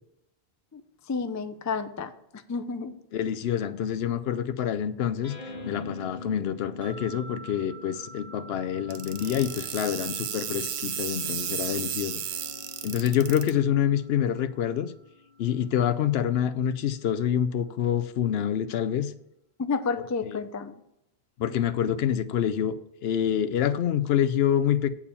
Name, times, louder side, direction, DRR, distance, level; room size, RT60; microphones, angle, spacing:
voice 1, 1.1-2.1 2.5-2.9 19.6-20.7, left 4 dB, 30° left, 10 dB, 0.3 m, -30 dB
voice 2, 3.1-5.3 5.7-12.2 12.8-14.9 15.4-19.1 20.2-20.4 21.4-22.8 23.0-24.9, left 9 dB, 75° left, 13 dB, 0.8 m, -26 dB
sound 1, 5.2-8.6 9.1-15.9, left 2 dB, 50° left, 1.2 m, -46 dB
sound 2, 6.8-16.1, right 3 dB, 50° right, 1.3 m, -51 dB
sound 3, 8.9-13.5, right 9 dB, 80° right, 0.9 m, -33 dB
8.5 x 4.8 x 6.8 m, 0.81 s
omnidirectional pair, 1.0 m